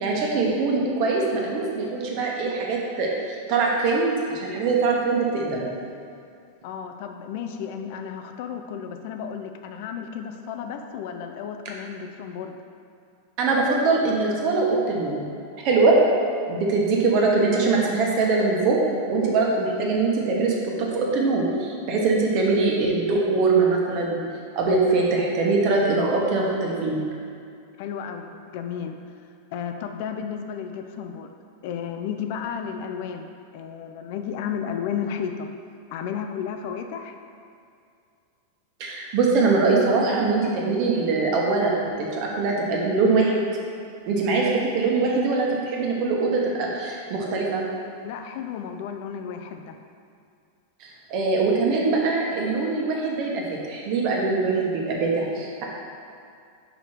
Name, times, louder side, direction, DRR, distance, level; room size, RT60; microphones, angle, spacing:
voice 1, 0.0-5.7 13.4-15.3 15.6-16.0 16.5-18.8 19.1-24.2 24.5-27.0 38.8-43.4 44.1-47.6 50.8-55.6, right 3 dB, 45° right, -2 dB, 1.2 m, -22 dB
voice 2, 6.6-12.6 27.8-29.0 29.5-31.3 31.6-35.5 35.9-37.1 48.0-49.8, left 7 dB, 55° left, 6 dB, 0.5 m, -33 dB
5.0 x 4.9 x 4.4 m, 2.4 s
supercardioid pair, 140°, 0 cm